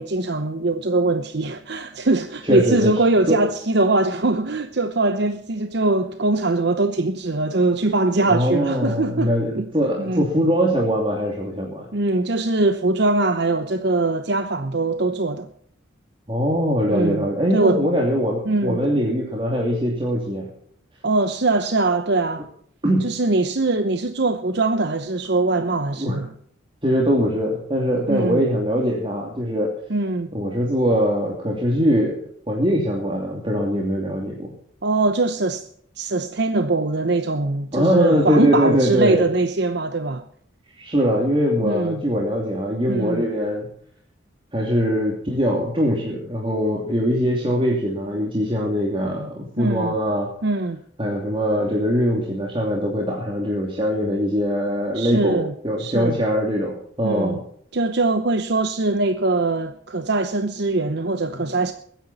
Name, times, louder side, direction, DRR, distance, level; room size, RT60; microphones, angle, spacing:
voice 1, 0.0-9.7 10.0-10.2 11.9-15.5 16.9-17.3 17.5-17.8 18.5-18.9 21.0-22.4 23.0-26.3 28.1-28.4 29.9-30.3 34.8-35.7 36.0-40.2 41.6-42.0 42.9-43.3 49.6-49.9 50.4-50.8 54.9-55.5 55.8-56.2 57.0-57.4 57.7-61.7, right 2 dB, 55° right, 0.9 m, -22 dB
voice 2, 2.4-2.9 3.3-3.4 8.3-11.9 16.3-20.5 22.8-23.1 26.0-26.2 26.8-29.7 30.3-32.2 32.5-34.5 37.7-39.3 40.8-43.7 44.5-50.3 51.0-57.4 61.3-61.4, equal, 25° right, 2.8 m, -22 dB
22.0 x 10.5 x 4.3 m
head